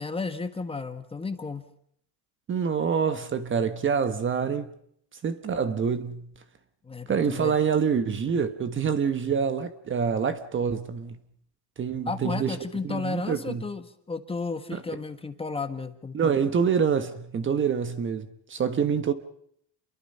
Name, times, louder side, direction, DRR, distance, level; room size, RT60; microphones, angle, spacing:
voice 1, 0.0-1.6 6.8-7.5 12.0-16.4, left 4 dB, 10° left, 1.4 m, -33 dB
voice 2, 2.5-4.7 5.2-6.3 7.1-11.2 11.8-12.6 12.8-13.6 14.7-14.8 16.1-19.1, right 6 dB, 25° right, 1.3 m, -26 dB
28.0 x 22.5 x 5.6 m
cardioid pair, 140°, 44 cm